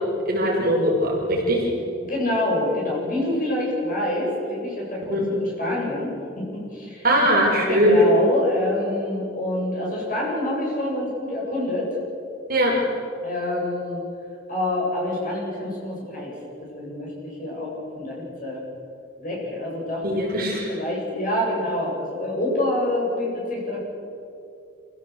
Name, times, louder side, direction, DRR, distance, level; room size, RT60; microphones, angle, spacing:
voice 1, 0.3-1.6 5.1-5.2 7.0-8.1 12.5-12.7 20.0-20.7, equal, 45° right, -3 dB, 5.4 m, -20 dB
voice 2, 2.1-7.2 7.7-11.9 13.2-14.0 14.5-16.3 16.6-18.6 19.2-20.2 20.7-23.8, left 1 dB, 45° left, -3 dB, 7.9 m, -27 dB
26.5 x 16.0 x 8.1 m, 2.6 s
head